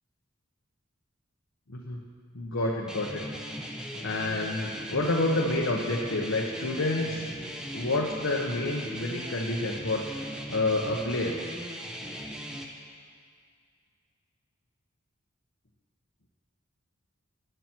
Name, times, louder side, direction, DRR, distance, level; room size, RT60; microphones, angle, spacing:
voice 1, 1.7-2.0 2.3-3.2 4.0-7.2 7.7-10.0 10.5-11.3, left 2 dB, 70° left, -2 dB, 1.0 m, -28 dB
sound 1, 2.9-12.7, equal, 5° right, 0.9 m, -38 dB
15.0 x 10.0 x 4.5 m, 2.2 s
head